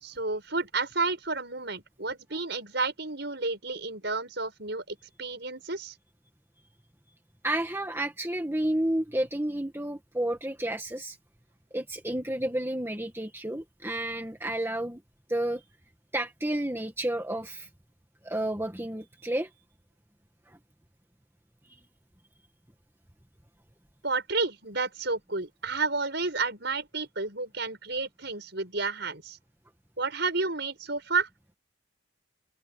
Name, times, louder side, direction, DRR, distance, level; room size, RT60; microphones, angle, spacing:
voice 1, 0.0-5.9 24.0-29.4 30.0-31.3, right 3 dB, 55° right, 7.6 m, -31 dB
voice 2, 7.4-11.2 11.7-15.0 15.3-15.6 16.1-17.7 18.2-19.5 20.5-20.6, right 1 dB, 10° right, 1.8 m, -31 dB
open air
head